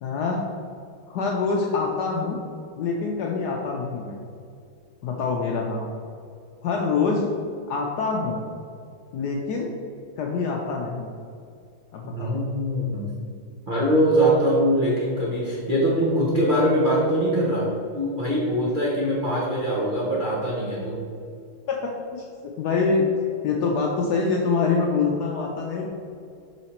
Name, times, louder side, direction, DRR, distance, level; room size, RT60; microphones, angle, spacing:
voice 1, 0.0-0.5 1.1-2.4 2.8-4.2 5.0-5.9 6.6-7.3 7.7-8.4 9.1-9.7 10.2-11.1 11.9-12.4 21.7-22.2 22.6-23.1 23.4-25.9, left 4 dB, 75° left, 0 dB, 0.9 m, -25 dB
voice 2, 12.0-13.1 13.7-17.7 17.9-21.0, equal, 90° right, -6 dB, 0.4 m, -22 dB
5.7 x 4.1 x 4.2 m, 2.4 s
omnidirectional pair, 2.3 m